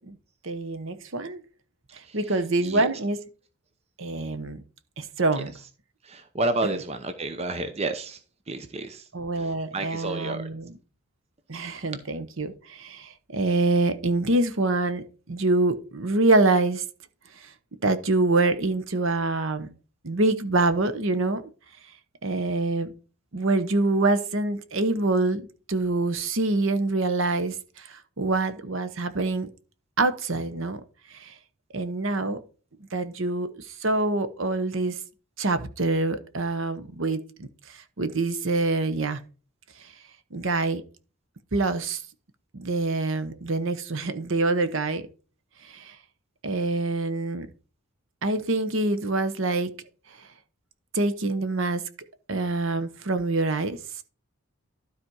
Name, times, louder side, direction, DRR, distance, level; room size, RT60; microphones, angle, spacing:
voice 1, 0.4-1.4 2.1-3.2 4.0-4.6 5.0-5.6 6.6-6.7 9.1-10.8 11.5-15.0 15.3-16.8 17.8-19.7 20.0-21.5 22.2-22.9 23.3-27.5 27.9-29.5 30.0-30.8 31.1-31.3 31.7-32.4 32.9-33.5 33.8-34.9 35.4-37.5 38.0-39.2 40.3-40.8 41.5-42.0 42.5-45.0 45.7-45.9 46.4-47.5 48.2-49.7 50.9-51.8 52.3-53.8, right 2 dB, 60° right, 0.9 m, -25 dB
voice 2, 2.0-2.8 5.4-5.5 6.0-8.2 8.5-9.0 9.4-10.5, right 2 dB, 30° right, 0.7 m, -31 dB
12.5 x 4.2 x 4.7 m
head